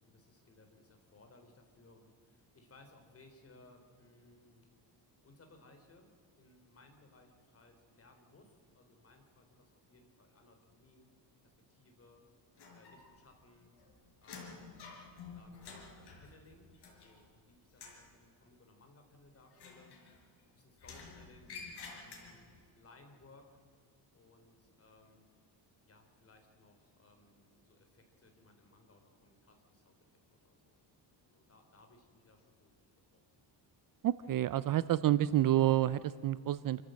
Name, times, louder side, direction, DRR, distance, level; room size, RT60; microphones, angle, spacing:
voice 1, 0.0-4.6 5.2-11.1 11.4-12.3 12.7-13.8 14.2-14.9 15.3-20.0 20.5-21.6 22.0-23.6 24.1-25.3 25.8-30.8 31.2-32.8 33.1-33.2, left 2 dB, 30° left, 5 dB, 3.4 m, -63 dB
sound 1, 12.6-13.3 13.6-17.4 17.7-18.1 19.5-20.4 20.8-22.6, left 4 dB, 60° left, 4.9 m, -51 dB
voice 2, 34.0-36.8, right 13 dB, 50° right, 16 dB, 0.5 m, -29 dB
27.0 x 14.5 x 7.6 m, 2.1 s
cardioid pair, 150°, 45 cm